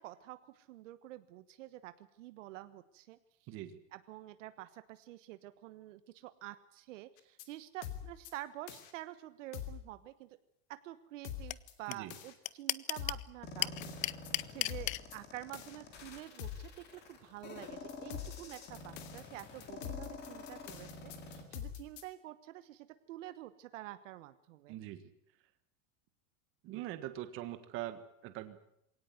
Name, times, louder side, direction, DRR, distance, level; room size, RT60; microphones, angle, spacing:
voice 1, 0.0-3.2 3.9-10.3 10.7-13.7 14.5-24.7, right 15 dB, 65° right, 12 dB, 1.2 m, -48 dB
voice 2, 3.5-3.8 11.9-12.1 24.7-25.1 26.6-28.7, right 13 dB, 30° right, 10 dB, 1.6 m, -43 dB
sound 1, 7.2-7.4 7.8-8.3 8.7-8.9 9.5-9.8 11.2-11.7 12.1-12.3 13.0-13.3 13.8-14.3 14.7-15.2 15.5-15.8 16.4-16.7 17.9-22.0, left 10 dB, 55° left, 3.0 m, -44 dB
sound 2, 11.5-11.6 11.9-12.0 12.2-13.2 13.6-15.0, left 18 dB, 75° left, 0.9 m, -32 dB
sound 3, 13.4-21.4, left 4 dB, 25° left, 3.2 m, -48 dB
22.5 x 18.0 x 9.5 m, 0.77 s
supercardioid pair, 180°, 40 cm